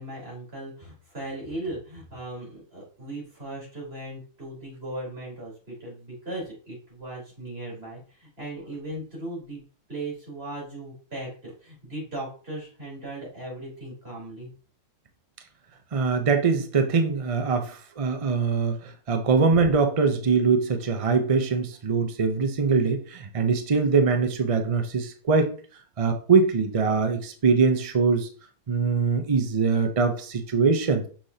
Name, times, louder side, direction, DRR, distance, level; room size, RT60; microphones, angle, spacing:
voice 1, 0.0-9.6 9.9-14.5, right 1 dB, 35° right, -5 dB, 4.2 m, -37 dB
voice 2, 15.9-25.5 26.0-28.3 28.7-31.1, right 5 dB, 60° right, 6 dB, 0.3 m, -23 dB
6.5 x 6.0 x 2.8 m, 0.40 s
omnidirectional pair, 1.7 m